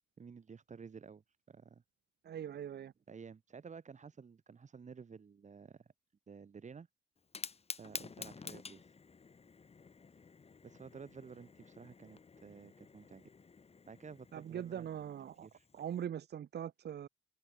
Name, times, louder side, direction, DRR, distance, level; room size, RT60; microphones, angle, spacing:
voice 1, 0.2-1.8 3.1-5.9 6.3-6.9 7.8-8.9 10.6-13.3 13.9-14.9 15.4-15.7, right 5 dB, 35° right, 2.4 m, -52 dB
voice 2, 2.2-2.9 14.3-15.5 15.7-17.1, right 9 dB, 55° right, 1.5 m, -41 dB
Fire, 7.2-16.1, left 5 dB, 30° left, 1.9 m, -50 dB
open air
cardioid pair, 90°, 20 cm